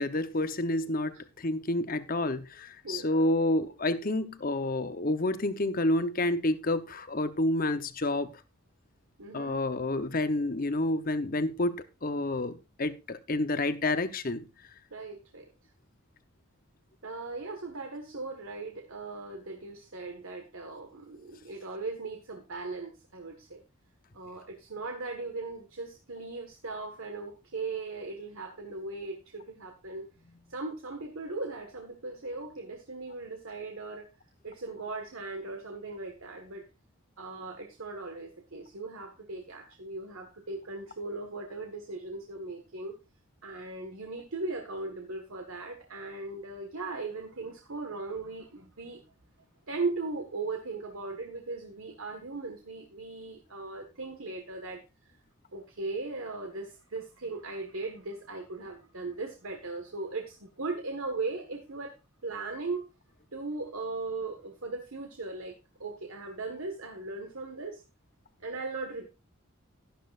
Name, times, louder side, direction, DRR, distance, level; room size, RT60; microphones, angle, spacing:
voice 1, 0.0-8.3 9.3-14.5, left 2 dB, 40° left, 0.9 m, -29 dB
voice 2, 2.8-3.3 9.2-9.6 14.9-15.5 17.0-23.6 24.1-30.0 30.5-34.1 34.4-36.6 37.2-43.0 43.4-49.0 49.7-55.1 55.5-61.9 62.2-62.9 63.3-67.8 68.4-69.1, right 3 dB, 80° right, 1.6 m, -38 dB
12.5 x 11.5 x 2.5 m
head